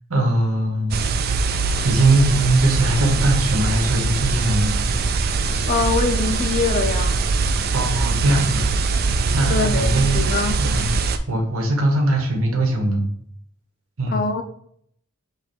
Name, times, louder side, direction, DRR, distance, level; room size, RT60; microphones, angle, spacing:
voice 1, 0.1-1.0 1.8-4.7 7.7-8.8 9.3-11.0 11.3-13.1 14.0-14.2, right 1 dB, 75° right, 1.1 m, -20 dB
sound 1, 0.9-11.2, right 4 dB, 45° right, 0.3 m, -22 dB
voice 2, 5.7-7.2 9.5-10.6 14.1-14.4, left 4 dB, 40° left, 0.4 m, -23 dB
5.1 x 2.4 x 4.3 m
head